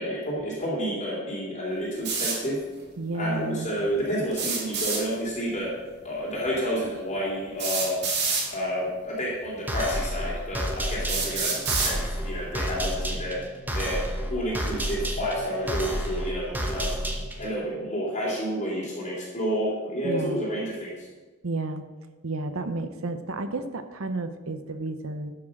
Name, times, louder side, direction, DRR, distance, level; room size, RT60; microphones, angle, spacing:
voice 1, 0.0-2.6 3.2-5.7 6.0-8.0 8.5-13.4 13.7-16.9 17.4-21.1, equal, 35° left, -5 dB, 3.1 m, -30 dB
sound 1, 2.0-2.4 4.3-5.0 6.5-6.6 7.6-8.5 9.5-9.6 10.2-10.3 11.1-11.9, right 4 dB, 50° right, 2.6 m, -27 dB
voice 2, 3.0-3.7 20.0-20.4 21.4-21.8 22.2-25.3, right 2 dB, 70° right, 8 dB, 0.8 m, -31 dB
sound 2, 9.7-17.5, equal, 10° right, 1.0 m, -31 dB
11.5 x 6.2 x 6.5 m, 1.3 s
head